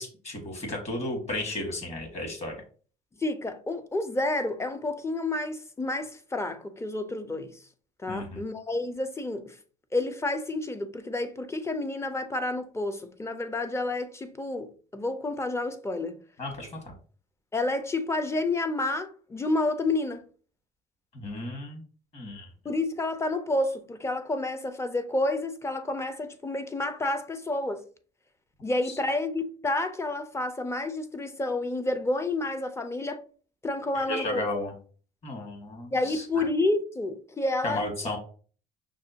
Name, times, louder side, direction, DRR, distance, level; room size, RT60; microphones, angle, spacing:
voice 1, 0.0-2.5 8.1-8.4 16.4-16.9 21.1-21.8 22.1-22.5 28.8-29.0 33.9-34.7 35.2-36.4 37.6-38.2, left 1 dB, 40° left, 1.7 m, -34 dB
voice 2, 3.2-7.6 8.0-9.6 9.9-16.2 17.5-20.2 22.6-27.8 28.6-33.2 33.6-34.5 35.9-37.8, left 2 dB, 15° left, 0.5 m, -29 dB
5.9 x 2.2 x 2.7 m
cardioid pair, 110°, 17 cm